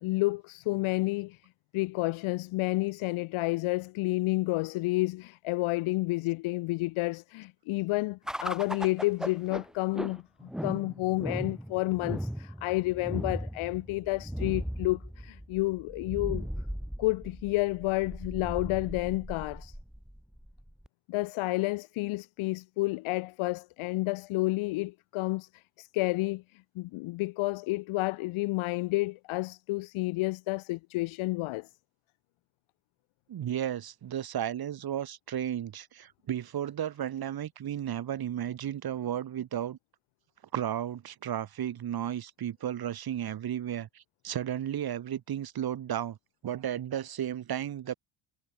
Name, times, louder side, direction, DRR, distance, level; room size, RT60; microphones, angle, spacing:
voice 1, 0.0-1.4 1.7-16.5 17.0-19.8 21.1-31.7, left 21 dB, 75° left, 0.9 m, -30 dB
sound 1, 8.3-20.9, equal, ahead, 1.2 m, -38 dB
voice 2, 33.3-39.8 40.5-46.2 46.4-47.9, right 10 dB, 45° right, 1.4 m, -34 dB
supercardioid pair, 70°, 49 cm